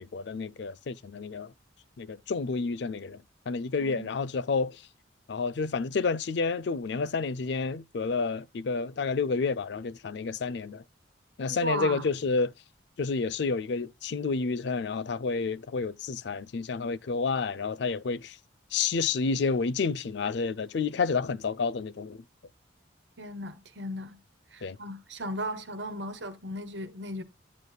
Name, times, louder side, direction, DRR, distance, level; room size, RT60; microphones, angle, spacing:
voice 1, 0.0-1.5 2.0-3.2 3.5-4.8 5.3-10.8 11.4-12.5 13.0-18.4 18.7-22.2 24.6-24.8, left 4 dB, 60° left, 0.4 m, -30 dB
voice 2, 3.8-4.1 11.6-12.0 23.2-24.2 24.5-27.2, right 1 dB, 65° right, 1.4 m, -36 dB
10.5 x 8.0 x 2.3 m
head